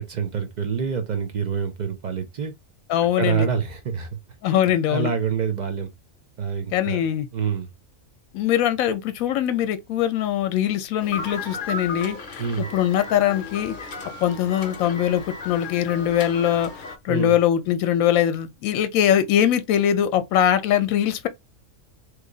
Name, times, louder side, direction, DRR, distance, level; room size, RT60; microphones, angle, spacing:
voice 1, 0.0-2.5 3.2-4.1 4.5-4.6 4.9-5.9 6.4-7.0 7.3-7.7 12.4-12.7 17.1-17.3, right 6 dB, 55° right, 0.5 m, -26 dB
voice 2, 2.9-3.5 4.4-5.1 6.7-7.3 8.3-13.9 14.2-21.3, left 10 dB, 80° left, 1.0 m, -22 dB
sound 1, 11.0-17.0, left 3 dB, 45° left, 0.7 m, -35 dB
3.1 x 2.3 x 3.7 m
omnidirectional pair, 1.4 m